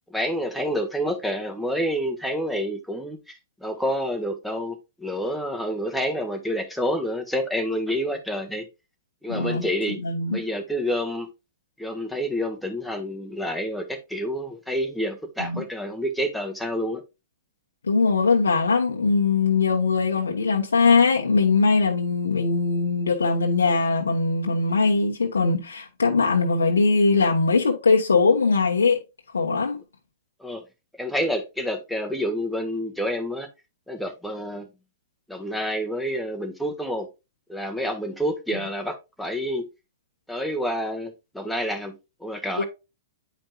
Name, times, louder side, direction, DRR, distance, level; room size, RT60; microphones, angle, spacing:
voice 1, 0.1-8.7 9.2-10.0 10.3-11.3 11.8-17.0 30.4-30.6 31.0-33.5 33.9-34.7 35.3-37.1 37.5-39.7 40.3-42.6, equal, ahead, 1.3 m, -28 dB
voice 2, 9.3-9.7 10.0-10.4 15.4-15.6 17.8-29.0 29.3-29.8 42.6-42.7, left 4 dB, 90° left, 1.1 m, -21 dB
8.7 x 5.1 x 2.3 m
hypercardioid pair, 120°, 0 cm